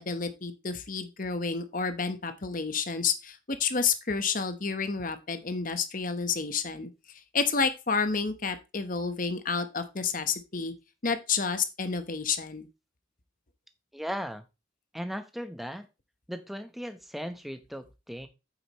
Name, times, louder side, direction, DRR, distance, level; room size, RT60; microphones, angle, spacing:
voice 1, 0.0-6.9 7.3-10.7 11.0-12.7, left 5 dB, 45° left, 1.1 m, -30 dB
voice 2, 13.9-14.4 14.9-15.8 16.3-18.3, equal, ahead, 0.9 m, -37 dB
8.7 x 8.0 x 3.1 m
head